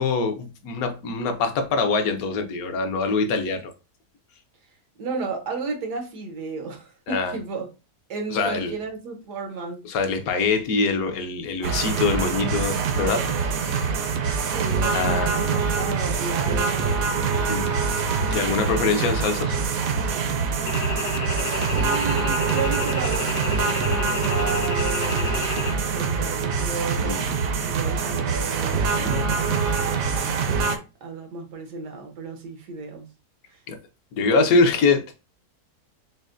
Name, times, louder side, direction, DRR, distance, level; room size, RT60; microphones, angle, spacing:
voice 1, 0.0-3.6 7.1-7.3 8.3-8.7 9.9-13.9 14.9-15.3 17.5-17.7 18.3-19.9 27.0-27.2 28.9-29.4 33.7-33.8 34.1-35.1, left 4 dB, 70° left, 1.1 m, -24 dB
voice 2, 5.0-7.7 8.1-9.9 14.4-18.0 21.7-29.4 29.8-30.4 31.0-33.1 33.5-33.6, right 3 dB, 85° right, 1.6 m, -34 dB
sound 1, 11.6-30.8, right 5 dB, 65° right, 1.0 m, -24 dB
sound 2, 20.7-25.7, left 5 dB, 50° left, 0.7 m, -32 dB
6.3 x 2.1 x 2.5 m
omnidirectional pair, 1.7 m